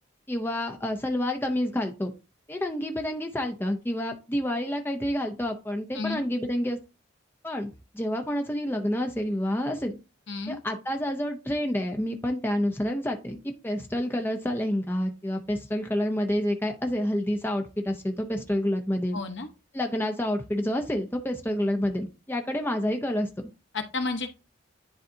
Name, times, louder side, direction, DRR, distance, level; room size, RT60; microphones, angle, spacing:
voice 1, 0.3-2.1 2.5-6.8 7.4-10.0 10.5-19.2 19.7-23.3, left 1 dB, 10° left, 4 dB, 0.6 m, -28 dB
voice 2, 5.9-6.2 10.3-10.6 19.1-19.5 23.7-24.3, left 3 dB, 65° left, 6 dB, 1.0 m, -31 dB
10.5 x 4.0 x 2.7 m, 0.30 s
head